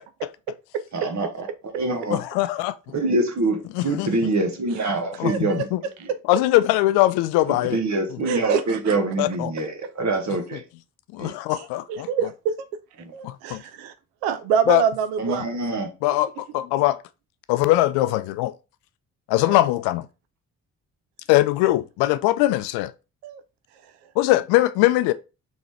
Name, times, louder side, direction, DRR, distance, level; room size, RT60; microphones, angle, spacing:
voice 1, 0.9-2.2 2.9-5.7 6.0-6.1 7.5-10.6 11.2-11.3 13.0-13.1 15.2-15.9, right 2 dB, 45° right, 1.5 m, -25 dB
voice 2, 2.1-2.7 3.7-4.1 5.2-5.8 6.3-7.8 9.2-9.5 11.1-12.1 13.2-13.6 14.7-14.8 16.0-17.0 17.5-18.5 19.3-20.1 21.3-22.9 24.2-25.1, left 16 dB, 75° left, 0.5 m, -21 dB
voice 3, 5.3-5.6 6.1-6.2 8.3-9.0 11.5-12.7 13.1-13.9 14.2-15.5 19.5-19.7 23.2-23.4, right 7 dB, 80° right, 0.5 m, -26 dB
3.9 x 3.9 x 3.3 m
hypercardioid pair, 40°, 39 cm